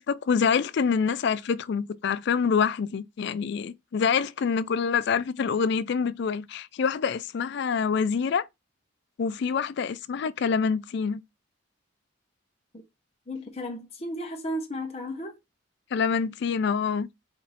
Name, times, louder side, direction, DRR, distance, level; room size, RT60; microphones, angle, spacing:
voice 1, 0.1-8.5 9.2-11.2 15.9-17.1, left 6 dB, 60° left, 0.3 m, -26 dB
voice 2, 13.3-15.4, equal, 30° left, 0.8 m, -34 dB
5.2 x 2.6 x 3.9 m
head